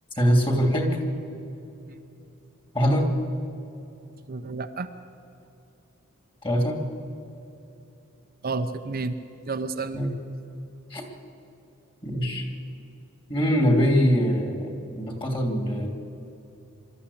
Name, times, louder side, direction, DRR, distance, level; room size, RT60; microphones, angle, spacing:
voice 1, 0.2-1.0 2.7-3.1 6.4-6.8 9.9-10.2 10.9-11.0 12.0-12.4 13.3-15.9, equal, 25° left, 3 dB, 2.9 m, -23 dB
voice 2, 4.3-4.9 8.4-9.2 9.5-10.0, right 3 dB, 45° right, 7 dB, 0.8 m, -30 dB
24.5 x 13.0 x 8.6 m, 2.9 s
head